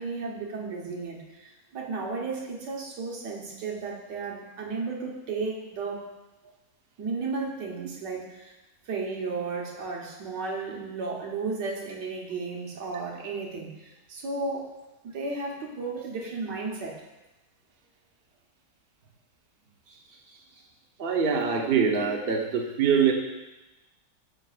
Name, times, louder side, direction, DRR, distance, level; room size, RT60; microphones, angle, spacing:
voice 1, 0.0-6.1 7.0-8.5 8.9-14.7 15.0-17.0 19.9-20.4, right 4 dB, 85° right, -1 dB, 1.8 m, -34 dB
voice 2, 21.0-23.1, right 6 dB, 40° right, 0 dB, 0.9 m, -24 dB
12.0 x 6.5 x 2.4 m, 1.1 s
omnidirectional pair, 1.8 m